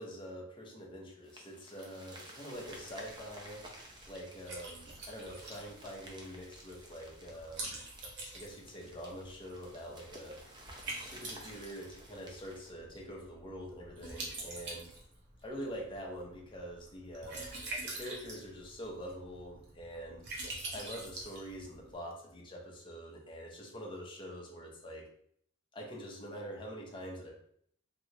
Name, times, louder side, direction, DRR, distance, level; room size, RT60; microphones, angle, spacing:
voice 1, 0.0-3.7 4.1-7.8 8.3-10.4 11.0-14.9 15.4-17.5 17.8-20.2 20.7-25.1 25.7-27.3, equal, 25° left, -2 dB, 0.7 m, -45 dB
sound 1, 1.2-12.7, right 1 dB, 20° right, 0.5 m, -53 dB
Liquid, 2.5-22.0, right 2 dB, 60° right, 0.8 m, -46 dB
3.1 x 2.7 x 2.9 m, 0.66 s
head